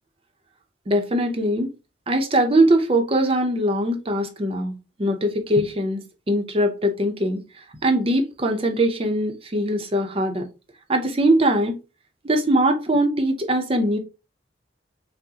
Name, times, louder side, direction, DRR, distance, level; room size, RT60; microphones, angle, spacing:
voice 1, 0.9-1.7 2.1-4.7 5.0-6.0 6.3-7.4 7.8-10.4 10.9-11.8 12.2-14.0, right 1 dB, 30° right, 0.6 m, -21 dB
6.1 x 2.1 x 2.7 m
head